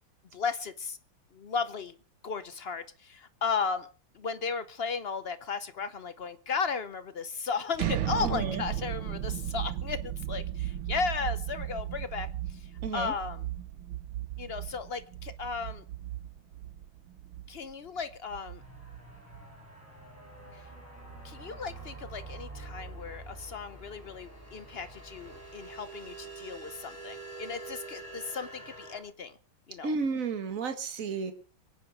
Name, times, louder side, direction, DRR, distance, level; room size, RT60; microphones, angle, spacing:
voice 1, 0.3-1.0 1.3-2.0 2.2-3.9 4.1-13.5 14.4-15.8 17.5-18.6 20.5-20.6 21.2-29.4 29.7-29.9, left 5 dB, 75° left, 12 dB, 0.5 m, -35 dB
sound 1, 7.7-19.6, right 11 dB, 80° right, 1.8 m, -36 dB
voice 2, 8.2-8.6 12.8-13.1 29.8-31.3, right 5 dB, 40° right, 8 dB, 2.1 m, -32 dB
sound 2, 18.6-29.0, right 3 dB, 5° left, 6.8 m, -46 dB
23.5 x 9.3 x 5.0 m, 0.39 s
omnidirectional pair, 2.3 m